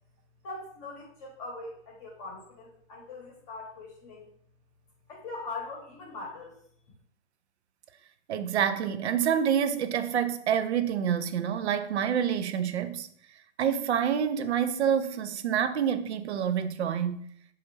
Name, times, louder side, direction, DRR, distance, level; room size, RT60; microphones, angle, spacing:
voice 1, 0.4-4.2 5.1-6.5, left 3 dB, 30° left, 0.9 m, -41 dB
voice 2, 8.3-13.1 13.6-17.2, right 8 dB, 65° right, 0.5 m, -27 dB
3.9 x 2.4 x 3.0 m
hypercardioid pair, 135°, 37 cm